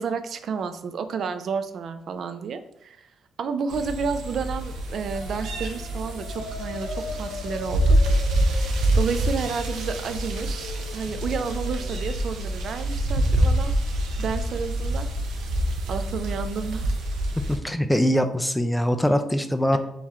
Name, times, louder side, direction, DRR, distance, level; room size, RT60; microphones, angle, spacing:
voice 1, 0.0-3.1 3.4-8.0 8.9-13.7 14.2-15.1 15.9-16.9 19.7-19.8, right 5 dB, 60° right, 10 dB, 0.4 m, -31 dB
sound 1, 3.7-17.6, right 1 dB, 80° right, 0.8 m, -26 dB
Air raid siren (Prague), 5.1-12.0, left 4 dB, 85° left, 0.5 m, -39 dB
voice 2, 17.5-19.8, equal, 5° left, 7 dB, 0.4 m, -22 dB
3.6 x 3.0 x 4.2 m, 0.78 s
cardioid pair, 90°, 0 cm